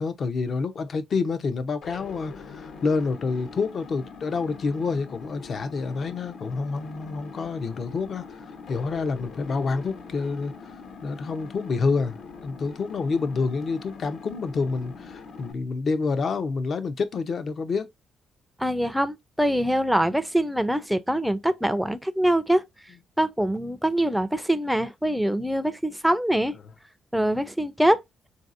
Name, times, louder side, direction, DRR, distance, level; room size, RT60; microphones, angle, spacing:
voice 1, 0.0-10.5 11.0-12.2 12.4-17.9, left 4 dB, 50° left, 0.6 m, -28 dB
sound 1, 1.8-15.5, left 5 dB, 75° left, 1.2 m, -43 dB
voice 2, 18.6-22.6 23.2-26.5 27.1-28.0, right 1 dB, ahead, 0.4 m, -24 dB
3.9 x 2.7 x 2.5 m
cardioid pair, 90°, 0 cm